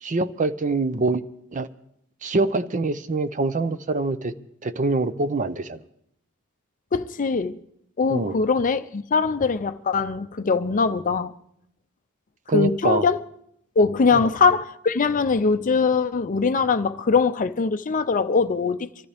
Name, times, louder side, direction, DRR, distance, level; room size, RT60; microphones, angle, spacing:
voice 1, 0.0-1.2 1.5-1.7 2.2-4.3 4.6-5.8 8.1-8.4 12.5-13.1 14.1-14.3, right 3 dB, 35° right, 0.6 m, -24 dB
voice 2, 6.9-7.6 8.0-11.3 12.5-13.2 13.8-19.1, left 4 dB, 35° left, 0.5 m, -22 dB
24.0 x 13.5 x 3.4 m
head